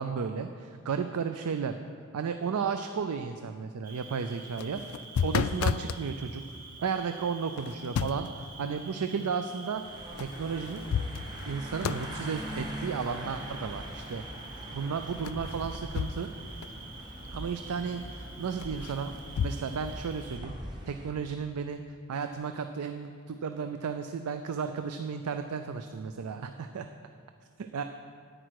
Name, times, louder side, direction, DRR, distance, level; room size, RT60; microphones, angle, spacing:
voice 1, 0.0-1.7 2.1-4.8 5.2-6.4 6.8-9.8 10.2-10.9 11.5-14.2 14.7-16.3 17.3-19.1 19.4-20.5 20.9-21.8 22.1-26.9 27.6-27.8, right 6 dB, 85° right, 8 dB, 0.4 m, -33 dB
Cricket, 3.8-20.4, right 3 dB, 40° right, 1.2 m, -48 dB
sound 1, 4.4-6.0 7.6-8.4 10.2-10.3 10.7-11.5 11.8-12.1 15.2-16.4 16.6-16.7 18.6-19.6, left 7 dB, 65° left, 0.3 m, -31 dB
sound 2, 9.7-21.1, equal, 20° right, 1.2 m, -42 dB
10.0 x 9.0 x 4.8 m, 2.3 s
head